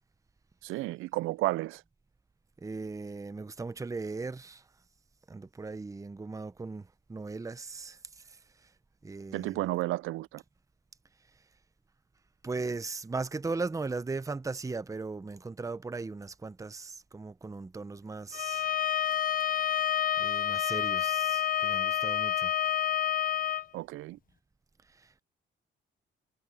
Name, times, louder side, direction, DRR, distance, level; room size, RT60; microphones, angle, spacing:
voice 1, 0.6-1.8 9.3-10.4 23.7-24.2, right 18 dB, 90° right, 0.4 m, -32 dB
voice 2, 2.6-4.7 5.3-8.7 9.0-9.7 12.4-18.7 20.2-22.5 24.9-25.2, right 3 dB, 15° right, 0.7 m, -38 dB
Bowed string instrument, 18.3-23.6, left 10 dB, 45° left, 0.8 m, -29 dB
cardioid pair, 90°, 20 cm